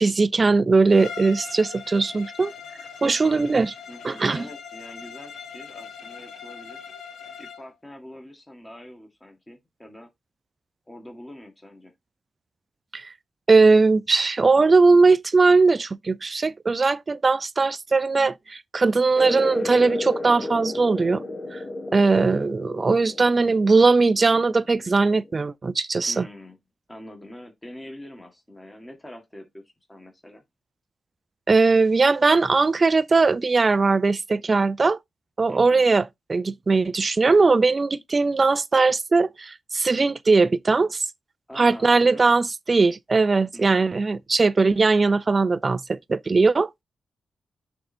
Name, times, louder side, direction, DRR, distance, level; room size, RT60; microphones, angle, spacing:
voice 1, 0.0-2.5 3.0-3.7 4.0-4.4 12.9-13.1 13.5-21.2 21.5-21.6 21.9-26.3 31.5-35.0 35.4-41.1 41.6-46.8, right 3 dB, 35° right, 0.5 m, -20 dB
Bowed string instrument, 0.9-7.7, left 6 dB, 75° left, 0.9 m, -41 dB
voice 2, 3.0-3.4 3.9-6.8 7.4-10.1 10.9-11.9 26.1-26.6 26.9-30.4 35.5-35.9 41.5-42.4 43.5-43.9, left 1 dB, 15° left, 1.8 m, -44 dB
sound 1, 19.1-25.3, left 2 dB, 40° left, 1.1 m, -34 dB
6.5 x 3.8 x 4.3 m
cardioid pair, 100°, 0 cm